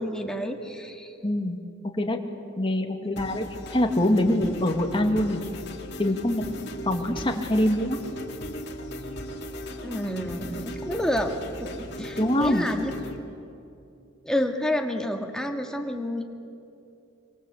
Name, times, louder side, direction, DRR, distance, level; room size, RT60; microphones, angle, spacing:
voice 1, 0.0-1.1 3.0-3.2 9.8-11.3 11.6-12.9 14.2-16.2, left 1 dB, 5° left, 3 dB, 2.0 m, -29 dB
voice 2, 1.2-1.6 2.0-2.2 2.6-3.4 3.7-5.4 6.0-6.4 6.9-8.0 12.0-12.7, left 1 dB, 25° left, 3 dB, 2.3 m, -24 dB
sound 1, 3.2-13.2, equal, 55° left, 2.6 m, -37 dB
27.0 x 25.0 x 8.3 m, 2.7 s
head